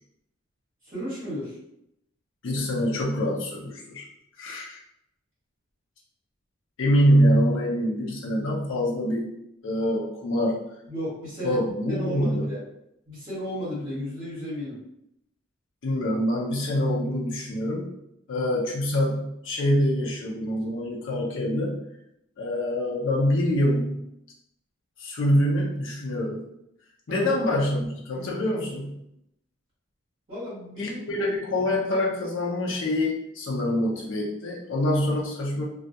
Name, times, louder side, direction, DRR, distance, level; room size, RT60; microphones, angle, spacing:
voice 1, 0.8-1.6 10.9-11.6 11.9-12.6 13.1-14.8 27.1-27.3 28.1-28.3 30.3-31.1, equal, 35° right, -10 dB, 1.1 m, -34 dB
voice 2, 2.4-4.1 4.4-4.8 6.8-9.3 9.6-10.6 11.4-12.5 15.8-17.9 18.3-21.8 22.4-24.0 25.0-26.4 27.1-29.0 30.8-35.6, equal, 60° left, -3 dB, 0.5 m, -25 dB
2.3 x 2.2 x 2.7 m, 0.80 s
head